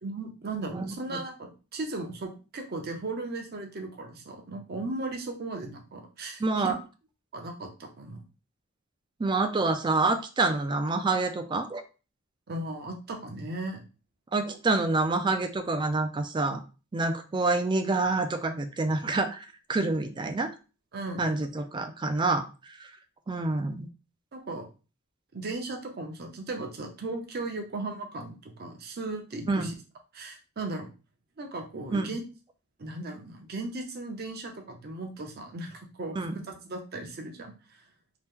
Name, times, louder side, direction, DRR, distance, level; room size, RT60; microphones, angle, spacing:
voice 1, 0.0-6.7 7.3-8.2 12.5-13.8 20.9-21.4 24.3-24.7 25.3-29.7 30.1-30.9 31.4-32.2 32.8-37.5, right 2 dB, 50° right, 4 dB, 0.7 m, -37 dB
voice 2, 0.7-1.2 6.4-6.8 9.2-11.8 14.3-16.6 16.9-19.4 19.7-20.5 21.2-22.5 22.8-22.9 23.3-23.9 29.5-29.7 31.9-32.2 36.1-36.4, right 3 dB, 20° right, 8 dB, 0.3 m, -27 dB
2.9 x 2.1 x 3.5 m, 0.33 s
head